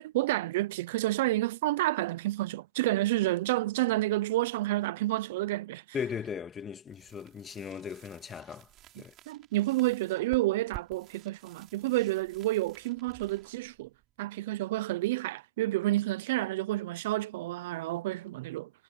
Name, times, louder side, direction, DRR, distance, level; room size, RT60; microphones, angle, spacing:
voice 1, 0.0-5.8 9.3-13.9 14.2-18.7, right 17 dB, 70° right, 0.7 m, -29 dB
voice 2, 5.9-8.7 9.0-9.1, left 7 dB, 25° left, 2.5 m, -37 dB
sound 1, 6.9-14.6, right 14 dB, 45° right, 5.7 m, -53 dB
hypercardioid pair, 105°, 0 cm